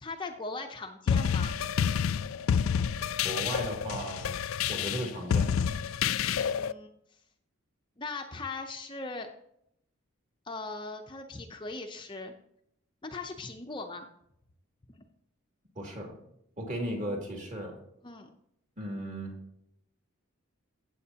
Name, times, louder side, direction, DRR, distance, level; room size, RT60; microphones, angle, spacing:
voice 1, 0.0-1.6 6.2-6.9 8.0-9.3 10.5-12.3 13.0-14.1 18.0-18.3, left 3 dB, 20° left, 4 dB, 0.6 m, -39 dB
sound 1, 1.1-6.7, left 7 dB, 70° left, 0.3 m, -28 dB
voice 2, 3.2-4.4 4.7-5.6 15.8-16.2 16.6-17.8 18.8-19.3, right 1 dB, 35° right, 1 dB, 2.3 m, -36 dB
15.0 x 7.8 x 2.8 m, 0.75 s
head